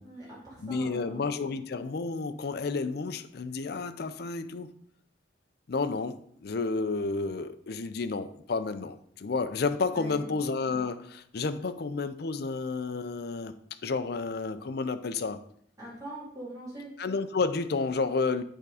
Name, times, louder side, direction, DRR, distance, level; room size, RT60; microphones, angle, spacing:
voice 1, 0.0-1.2 9.9-10.3 15.8-16.9, right 1 dB, 20° right, 2.6 m, -42 dB
voice 2, 0.6-4.7 5.7-13.6 13.8-15.4 17.0-18.4, left 4 dB, 55° left, 0.5 m, -31 dB
9.3 x 3.6 x 4.8 m
head